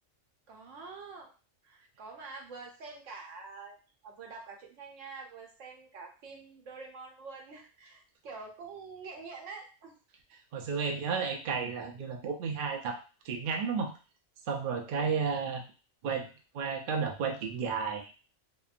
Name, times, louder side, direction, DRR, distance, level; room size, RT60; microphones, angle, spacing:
voice 1, 0.5-1.3 1.6-3.8 4.0-10.0 14.9-15.1, right 4 dB, 75° right, 0 dB, 1.1 m, -46 dB
voice 2, 10.5-13.0 13.3-13.9 14.5-15.6 16.0-16.3 16.5-18.1, right 5 dB, 60° right, 2 dB, 0.5 m, -32 dB
2.9 x 2.1 x 2.4 m, 0.34 s
omnidirectional pair, 1.3 m